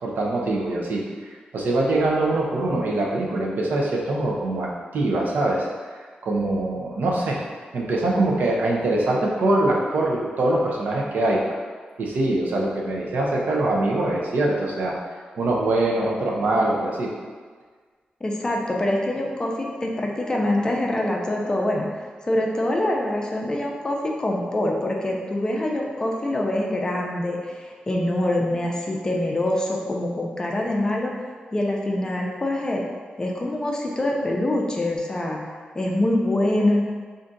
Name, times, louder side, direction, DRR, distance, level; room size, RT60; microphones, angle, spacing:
voice 1, 0.0-5.7 6.2-7.4 7.7-11.4 12.0-15.0 15.4-17.1, right 2 dB, 80° right, -2 dB, 0.5 m, -23 dB
voice 2, 18.2-31.1 31.5-32.8 33.2-35.4 35.7-36.8, left 1 dB, 25° left, -1 dB, 0.4 m, -25 dB
2.5 x 2.4 x 3.9 m, 1.5 s
wide cardioid pair, 125°, 3 cm